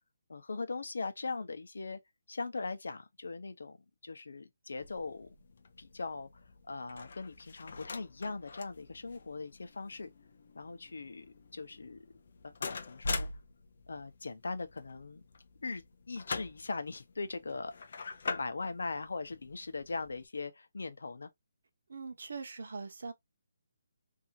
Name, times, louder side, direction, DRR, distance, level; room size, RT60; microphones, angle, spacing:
voice 1, 0.3-2.0 2.3-3.8 4.0-5.3 5.8-6.3 6.7-10.1 10.5-11.3 11.5-12.0 12.4-13.3 13.9-15.2 15.6-17.7 18.3-21.3, left 3 dB, 90° left, 0.7 m, -40 dB
sound 1, 4.8-20.3, left 4 dB, 45° left, 0.4 m, -44 dB
voice 2, 21.9-23.1, right 4 dB, 55° right, 0.8 m, -42 dB
2.8 x 2.4 x 2.7 m
hypercardioid pair, 180°, 0 cm